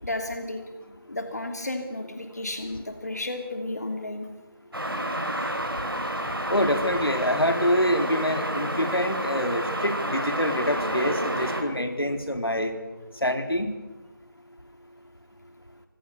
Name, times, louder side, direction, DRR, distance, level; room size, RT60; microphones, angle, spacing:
voice 1, 0.0-4.3, left 2 dB, 45° left, 5 dB, 2.9 m, -33 dB
sound 1, 4.7-11.6, right 1 dB, 75° right, 7.1 m, -30 dB
voice 2, 6.5-12.7 13.2-13.7, equal, 80° left, 6 dB, 4.4 m, -25 dB
28.5 x 25.5 x 6.9 m, 1.1 s
figure-of-eight pair, 170°, 12 cm